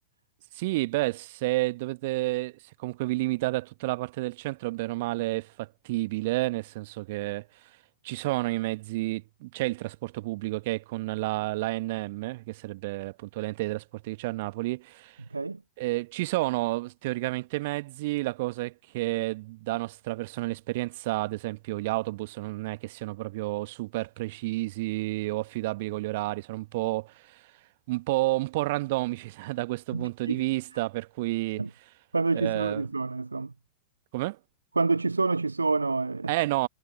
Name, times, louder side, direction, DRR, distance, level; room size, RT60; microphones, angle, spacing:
voice 1, 0.5-7.5 8.0-15.2 15.8-27.4 27.9-31.8 32.3-32.9 34.1-34.4 36.3-36.7, right 20 dB, 50° right, 1.2 m, -30 dB
voice 2, 29.9-30.4 31.6-31.7 32.1-33.5 34.8-36.3, right 3 dB, 80° right, 0.4 m, -27 dB
figure-of-eight pair, 95°, 0 cm